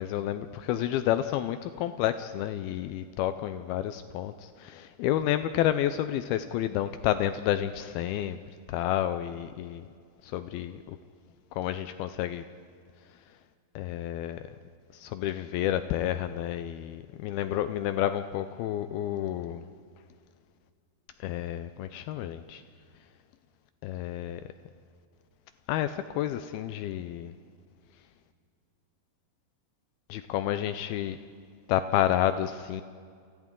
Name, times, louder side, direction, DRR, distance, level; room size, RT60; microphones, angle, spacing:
voice 1, 0.0-8.4 8.7-9.8 10.2-11.0 11.6-12.4 13.8-14.4 14.9-19.6 21.2-22.6 23.8-24.4 25.7-27.3 30.1-31.2 31.7-32.8, left 12 dB, 90° left, 10 dB, 2.1 m, -30 dB
29.5 x 25.0 x 3.8 m, 2.2 s
omnidirectional pair, 5.1 m